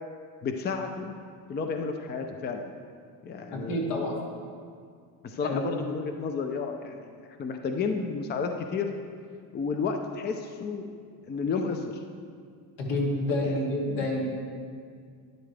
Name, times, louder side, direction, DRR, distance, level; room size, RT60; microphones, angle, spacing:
voice 1, 0.4-1.1 1.5-2.7 3.2-4.1 5.2-8.9 9.5-10.9 11.3-11.8 13.4-13.6, left 5 dB, 25° left, 5 dB, 0.5 m, -32 dB
voice 2, 3.5-4.2 5.4-5.6 12.8-14.2, left 1 dB, 80° left, -3 dB, 2.6 m, -28 dB
12.0 x 10.5 x 3.3 m, 2.1 s
cardioid pair, 145°, 41 cm